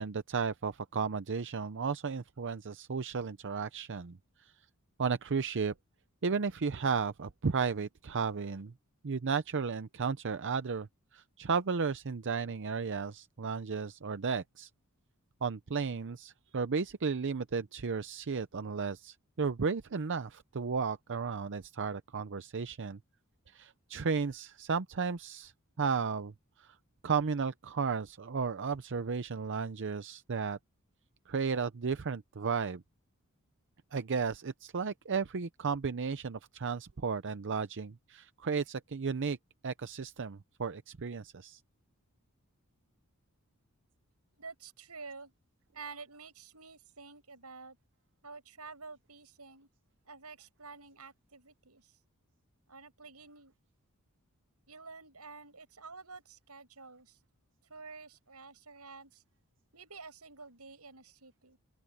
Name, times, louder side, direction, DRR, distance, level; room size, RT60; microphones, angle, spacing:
voice 1, 0.0-4.2 4.4-4.5 5.0-5.7 6.2-8.7 9.0-10.9 11.1-14.7 15.4-23.0 23.5-25.5 25.8-26.3 26.6-26.7 27.0-30.6 31.3-32.8 33.9-39.4 39.6-41.6, right 5 dB, 55° right, 0.6 m, -34 dB
voice 2, 44.3-45.3 45.7-47.8 48.2-49.7 50.0-52.0 52.7-53.5 54.7-57.2 57.7-59.2 59.7-61.6, right 4 dB, 90° right, 7.6 m, -50 dB
open air
head